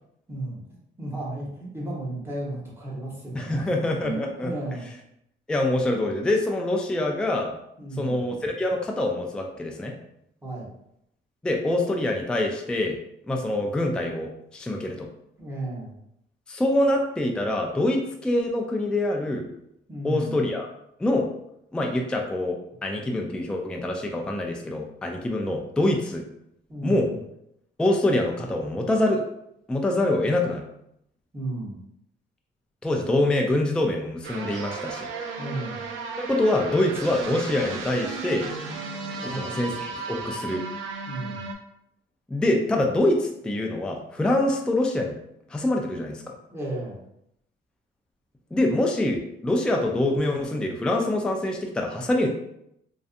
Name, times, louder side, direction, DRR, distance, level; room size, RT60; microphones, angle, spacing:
voice 1, 0.3-0.6 1.0-3.7 4.0-4.9 7.8-8.2 10.4-10.7 15.4-15.9 19.9-20.4 26.7-27.2 31.3-31.8 35.4-35.9 39.2-39.6 41.1-41.5 46.5-47.0, right 2 dB, 10° right, -5 dB, 1.0 m, -34 dB
voice 2, 3.3-4.5 5.5-7.5 8.0-9.9 11.4-13.0 13.3-15.1 16.5-19.5 20.0-20.7 21.0-21.3 21.7-26.2 26.8-27.1 27.8-29.2 29.7-30.7 32.8-35.1 36.2-38.5 39.2-40.6 42.3-45.1 45.5-46.2 48.5-52.3, left 1 dB, 5° left, 1 dB, 0.3 m, -25 dB
sound 1, 34.2-41.5, right 4 dB, 85° right, 0.5 m, -34 dB
2.6 x 2.2 x 2.5 m, 0.78 s
cardioid pair, 90°, 20 cm